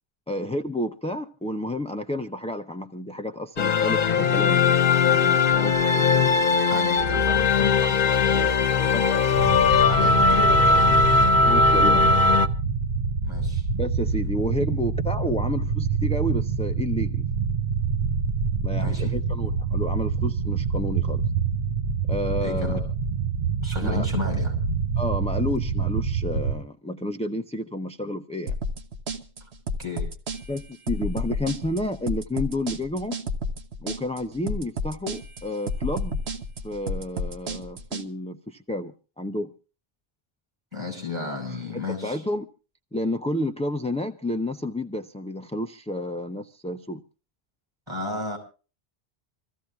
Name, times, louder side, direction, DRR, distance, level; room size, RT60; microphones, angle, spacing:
voice 1, 0.3-6.6 8.9-9.5 11.4-12.1 13.8-17.2 18.6-21.2 22.1-22.9 23.8-24.1 25.0-28.5 30.5-33.2 33.8-36.2 36.6-39.5 42.0-42.5 42.9-47.0, left 1 dB, 10° left, 0.4 m, -30 dB
sound 1, 3.6-12.5, left 4 dB, 55° left, 1.0 m, -19 dB
voice 2, 6.7-8.9 9.9-11.1 13.2-13.6 18.7-19.1 22.4-22.8 23.6-24.5 29.4-29.5 29.8-30.1 40.7-42.2 47.9-48.4, left 3 dB, 25° right, 6.1 m, -33 dB
sound 2, 9.3-26.6, right 5 dB, 55° right, 0.9 m, -26 dB
sound 3, 28.5-38.1, left 1 dB, 90° right, 1.4 m, -31 dB
26.5 x 15.0 x 2.3 m
omnidirectional pair, 1.1 m